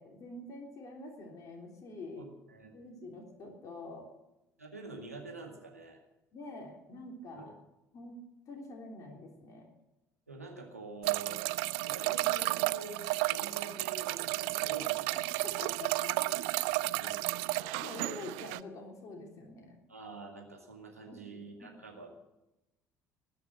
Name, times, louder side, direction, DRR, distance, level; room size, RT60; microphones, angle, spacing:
voice 1, 0.0-2.3 2.7-4.1 6.3-7.5 7.9-8.2 8.5-9.7 15.6-16.6 17.8-19.7 21.1-22.0, left 2 dB, 45° left, 1 dB, 3.4 m, -46 dB
voice 2, 2.2-2.7 4.6-6.0 7.3-7.5 10.3-11.4 11.8-15.4 16.9-17.4 19.9-22.1, right 3 dB, 90° right, 1 dB, 2.1 m, -47 dB
sound 1, 11.0-18.6, right 21 dB, 65° right, 0.4 m, -32 dB
20.0 x 7.0 x 9.0 m, 0.95 s
figure-of-eight pair, 55°, 8 cm